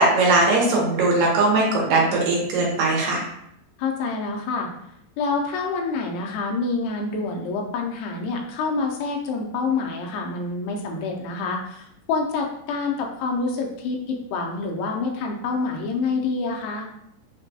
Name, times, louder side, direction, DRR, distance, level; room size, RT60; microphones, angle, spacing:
voice 1, 0.0-3.2, right 2 dB, 75° right, -2 dB, 2.5 m, -19 dB
voice 2, 3.8-4.7 5.2-16.9, left 4 dB, 80° left, 1 dB, 2.3 m, -27 dB
5.8 x 2.2 x 2.7 m, 0.77 s
omnidirectional pair, 4.2 m